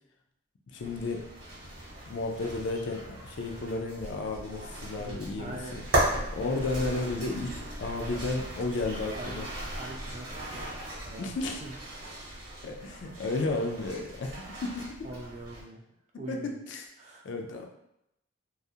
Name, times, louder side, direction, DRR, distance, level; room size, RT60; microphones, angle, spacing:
voice 1, 0.7-1.3 2.1-5.8 6.3-9.5 11.2-11.6 12.6-15.1 16.3-16.9 17.2-17.7, left 3 dB, 60° left, 3 dB, 0.3 m, -33 dB
sound 1, 0.8-15.6, right 1 dB, 50° right, 0.9 m, -37 dB
voice 2, 5.0-6.0 7.5-7.8 9.1-9.5 9.8-10.7 11.0-11.3 11.6-12.2 15.0-15.8 16.2-16.5 17.0-17.3, right 2 dB, 35° right, 0 dB, 0.3 m, -43 dB
2.3 x 2.0 x 2.7 m, 0.82 s
head